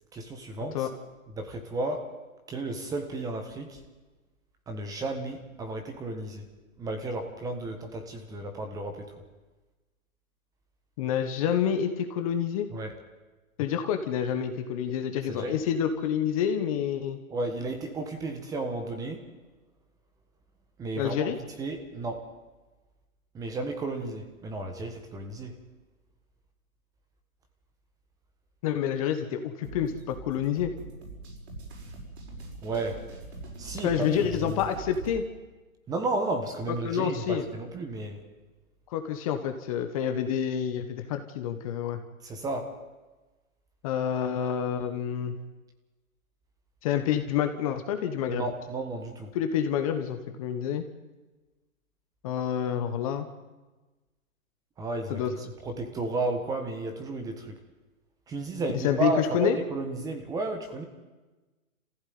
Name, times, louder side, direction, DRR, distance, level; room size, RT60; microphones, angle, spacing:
voice 1, 0.1-0.9 1.4-2.1 2.5-3.8 4.7-6.5 6.8-9.1 12.7-12.9 15.3-15.6 17.3-19.2 20.8-21.3 21.6-22.2 23.3-25.6 32.6-33.0 33.6-34.6 35.9-38.2 42.2-42.7 48.3-49.3 54.8-57.6 58.3-60.8, right 2 dB, 10° right, 5 dB, 1.5 m, -33 dB
voice 2, 11.0-12.7 13.6-17.2 21.0-21.4 28.6-30.7 33.8-35.2 36.8-37.5 38.9-42.0 43.8-45.3 46.8-48.5 49.3-50.8 52.2-53.3 55.1-55.3 58.7-59.6, left 9 dB, 25° left, 7 dB, 1.3 m, -28 dB
sound 1, 29.6-35.2, right 2 dB, 50° right, 6.1 m, -43 dB
26.0 x 15.5 x 9.5 m, 1.2 s
hypercardioid pair, 155°, 42 cm